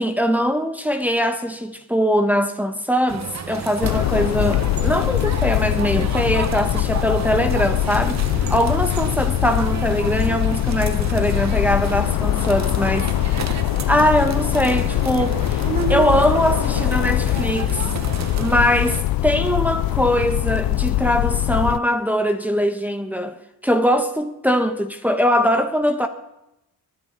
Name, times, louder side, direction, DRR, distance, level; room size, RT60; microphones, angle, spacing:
voice 1, 0.0-13.4 13.9-17.9 18.4-23.4 23.6-26.1, equal, 5° right, 1.1 m, -21 dB
sound 1, 3.1-19.0, right 7 dB, 45° right, 1.3 m, -32 dB
sound 2, 3.8-21.8, left 15 dB, 65° left, 0.5 m, -22 dB
22.0 x 10.5 x 4.0 m
cardioid pair, 115°, 37 cm